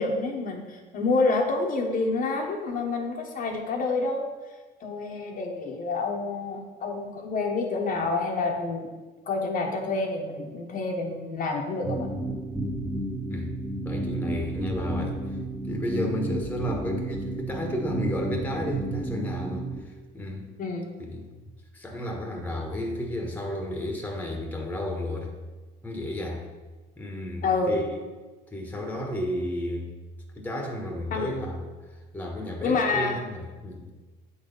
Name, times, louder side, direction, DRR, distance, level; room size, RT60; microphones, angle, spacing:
voice 1, 0.0-4.3 4.8-8.9 9.3-12.1 20.6-20.9 27.4-27.7 31.1-31.3 32.6-33.2, left 3 dB, 55° left, 1 dB, 1.1 m, -28 dB
sound 1, 11.8-19.8, right 2 dB, 10° right, 1.1 m, -31 dB
voice 2, 13.8-15.4 15.6-20.5 21.0-21.3 21.7-25.3 25.8-26.5 27.0-28.0 28.5-29.9 30.3-31.7 32.1-33.9, left 1 dB, 10° left, 1 dB, 1.3 m, -32 dB
7.8 x 4.0 x 5.4 m, 1.3 s
cardioid pair, 110°, 17 cm